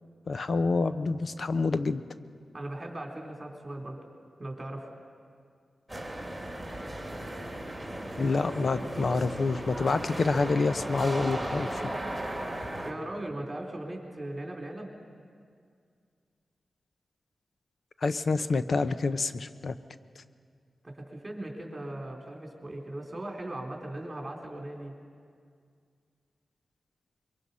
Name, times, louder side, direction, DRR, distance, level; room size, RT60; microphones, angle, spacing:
voice 1, 0.3-2.0 8.2-11.8 18.0-19.7, left 3 dB, 60° left, 12 dB, 0.7 m, -27 dB
voice 2, 2.5-4.0 4.4-4.9 12.8-14.9 20.8-24.9, right 1 dB, 25° right, 1 dB, 3.6 m, -38 dB
sound 1, 5.9-12.9, right 1 dB, ahead, 2.9 m, -36 dB
23.5 x 23.0 x 5.6 m, 2.2 s
wide cardioid pair, 85°, 0 cm